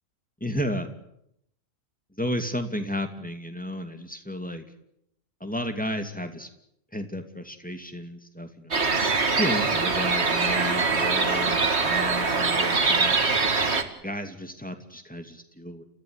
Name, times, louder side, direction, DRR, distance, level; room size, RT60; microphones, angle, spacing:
voice 1, 0.4-0.9 2.2-4.6 5.4-6.5 6.9-8.8 9.3-13.3 14.0-15.8, equal, 5° left, 6 dB, 2.6 m, -33 dB
sound 1, 8.7-13.8, right 4 dB, 55° right, 2.3 m, -23 dB
30.0 x 15.5 x 9.8 m, 0.77 s
omnidirectional pair, 1.4 m